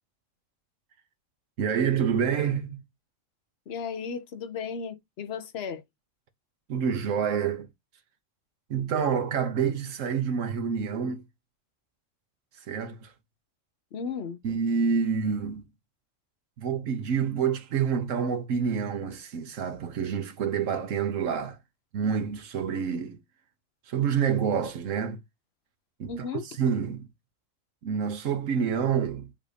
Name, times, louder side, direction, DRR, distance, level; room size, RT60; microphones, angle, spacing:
voice 1, 1.6-2.8 6.7-7.7 8.7-11.2 12.7-13.1 14.4-15.6 16.6-21.6 21.9-23.2 23.9-25.2 26.0-26.1 26.6-27.1 27.8-29.3, right 7 dB, 90° right, 1.2 m, -27 dB
voice 2, 3.7-5.8 13.9-14.4 26.1-26.5, left 6 dB, 60° left, 1.0 m, -35 dB
7.2 x 2.7 x 5.0 m
omnidirectional pair, 1.3 m